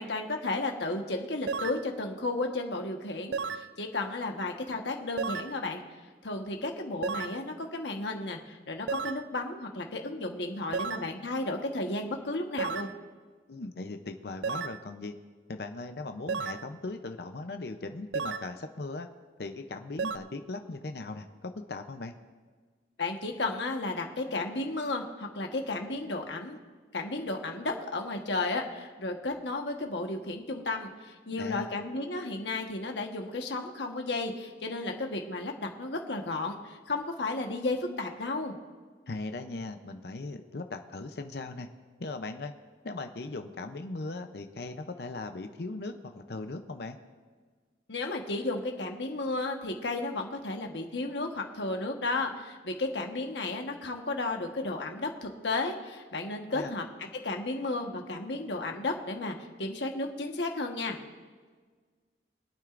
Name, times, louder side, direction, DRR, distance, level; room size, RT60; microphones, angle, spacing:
voice 1, 0.0-5.8 6.2-12.9 23.0-26.6 26.9-38.6 47.9-56.8 57.2-61.0, left 2 dB, 75° left, 3 dB, 1.3 m, -33 dB
sound 1, 1.5-1.8 3.3-3.7 5.2-5.5 7.0-7.4 8.9-9.2 10.7-11.1 12.6-13.0 14.4-14.8 16.3-16.7 18.1-18.5 20.0-20.2, right 5 dB, 80° right, 0.4 m, -33 dB
voice 2, 13.5-15.1 15.5-19.1 19.4-22.2 31.4-31.8 39.1-41.7 42.0-42.5 42.8-47.0 56.5-56.8, left 3 dB, 60° left, 7 dB, 0.6 m, -38 dB
24.5 x 9.0 x 2.5 m, 1.5 s
head